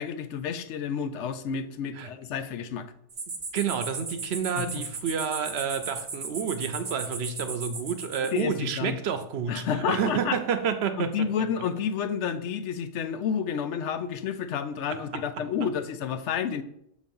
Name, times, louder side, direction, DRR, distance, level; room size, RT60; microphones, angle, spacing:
voice 1, 0.0-2.9 4.6-4.8 8.3-9.0 9.5-10.4 11.0-16.6, left 7 dB, 75° left, 10 dB, 0.9 m, -30 dB
sound 1, 3.1-8.4, right 4 dB, 40° right, 0.6 m, -37 dB
voice 2, 3.5-11.1 15.1-15.4, right 7 dB, 65° right, 9 dB, 0.8 m, -29 dB
6.3 x 3.1 x 5.3 m, 0.74 s
omnidirectional pair, 1.2 m